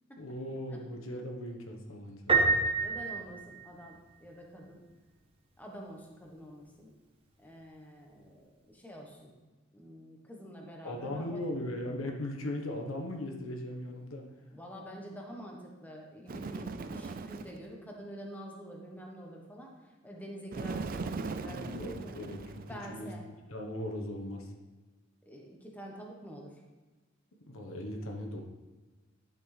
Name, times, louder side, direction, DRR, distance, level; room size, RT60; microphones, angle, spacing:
voice 1, 0.2-2.4 10.8-14.2 21.4-23.1 23.5-24.5 27.5-28.4, left 1 dB, 85° left, 2 dB, 1.2 m, -38 dB
Piano, 2.3-4.1, right 3 dB, 25° right, 1.1 m, -28 dB
voice 2, 2.8-4.8 5.6-6.9 7.4-9.3 9.7-11.4 14.5-22.2 22.7-23.2 25.3-26.6, equal, 10° left, 0 dB, 1.1 m, -47 dB
Bird, 16.3-17.7 20.5-23.0, right 4 dB, 45° right, 0.4 m, -39 dB
10.5 x 6.1 x 3.4 m, 1.3 s
head